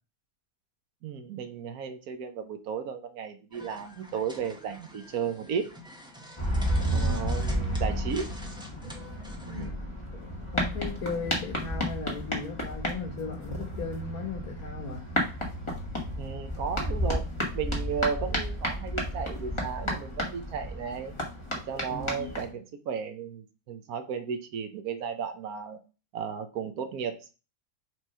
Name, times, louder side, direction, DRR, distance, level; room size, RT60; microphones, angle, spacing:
voice 1, 1.0-5.7 6.9-8.3 9.5-10.0 16.1-17.2 17.5-21.1 21.7-25.8 26.1-27.3, right 6 dB, 85° right, 6 dB, 1.3 m, -34 dB
sound 1, 3.5-9.7, equal, 5° right, 1.0 m, -47 dB
sound 2, 6.4-22.5, equal, 20° left, 1.6 m, -32 dB
voice 2, 6.8-7.3 9.4-9.8 10.1-15.0 21.9-22.3, left 4 dB, 90° left, 1 dB, 1.9 m, -37 dB
6.3 x 3.1 x 5.5 m, 0.32 s
omnidirectional pair, 1.5 m